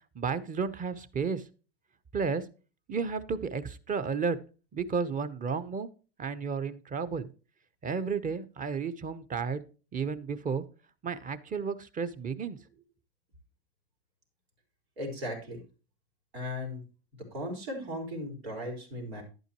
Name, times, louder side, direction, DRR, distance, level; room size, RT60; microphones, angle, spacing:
voice 1, 0.1-1.4 2.1-2.4 2.9-4.4 4.7-5.9 6.2-7.3 7.8-9.6 9.9-10.6 11.0-12.6, right 5 dB, 25° right, 11 dB, 1.0 m, -32 dB
voice 2, 15.0-15.6 16.3-16.8 17.3-19.2, left 1 dB, 90° right, 1 dB, 4.3 m, -37 dB
11.0 x 9.1 x 3.1 m, 0.35 s
hypercardioid pair, 100°, 30 cm